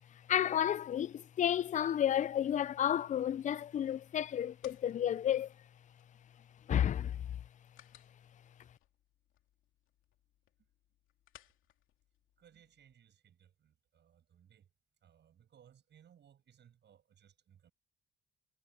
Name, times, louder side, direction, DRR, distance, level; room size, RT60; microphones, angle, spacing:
voice 1, 0.3-5.5 6.7-7.1, left 10 dB, 40° left, 0.4 m, -31 dB
sound 1, 4.0-12.9, left 13 dB, 85° left, 2.6 m, -66 dB
voice 2, 12.4-14.7 15.0-17.7, right 9 dB, 60° right, 7.5 m, -64 dB
cardioid pair, 90°, 20 cm